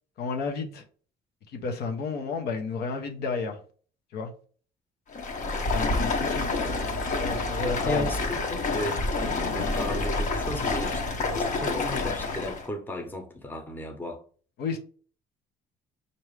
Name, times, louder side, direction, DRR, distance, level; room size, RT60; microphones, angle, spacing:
voice 1, 0.2-0.8 1.5-3.6 4.1-4.3 5.7-6.7 7.2-8.1 14.6-14.8, left 4 dB, 70° left, 0.8 m, -32 dB
Stream, 5.1-12.7, left 3 dB, 45° left, 0.9 m, -28 dB
voice 2, 5.7-6.0 7.6-14.2, left 1 dB, 10° left, 0.8 m, -35 dB
4.6 x 2.7 x 3.2 m
cardioid pair, 110°, 17 cm